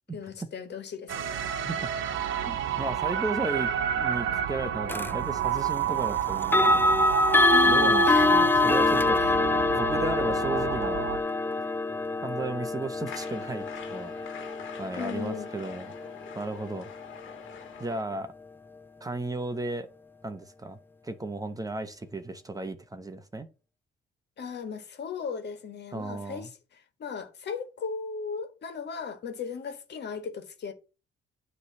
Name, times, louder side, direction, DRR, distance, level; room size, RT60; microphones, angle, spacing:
voice 1, 0.1-1.3 7.5-8.3 9.2-9.4 14.9-15.5 24.4-30.7, left 5 dB, 60° left, 1.7 m, -37 dB
sound 1, 1.1-11.2, right 9 dB, 90° right, 0.9 m, -30 dB
voice 2, 2.5-6.9 7.6-11.0 12.2-14.1 14.8-15.9 16.3-16.9 17.8-18.3 19.0-19.9 20.2-20.8 21.0-23.5 25.9-26.5, right 2 dB, 20° right, 0.8 m, -35 dB
sound 2, 4.9-5.1 6.4-17.3, left 2 dB, 10° left, 0.3 m, -25 dB
sound 3, 13.0-18.0, left 7 dB, 75° left, 1.5 m, -45 dB
9.2 x 3.3 x 6.8 m
cardioid pair, 90°, 20 cm